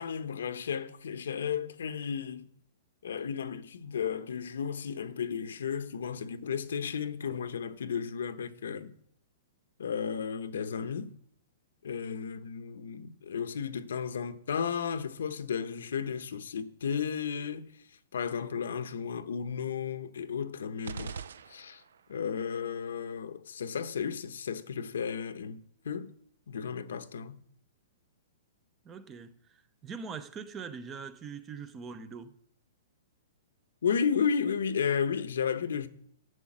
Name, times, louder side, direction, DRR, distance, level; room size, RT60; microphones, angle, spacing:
voice 1, 0.0-2.5 3.0-8.9 9.8-11.1 11.8-17.8 18.1-21.1 21.5-21.8 22.1-26.1 26.5-27.4 33.8-35.9, left 7 dB, 85° left, 1.0 m, -33 dB
sound 1, 20.8-22.2, right 6 dB, 85° right, 0.6 m, -42 dB
voice 2, 28.8-32.3, right 5 dB, 15° right, 0.6 m, -42 dB
11.0 x 6.9 x 8.7 m
hypercardioid pair, 170°, 0 cm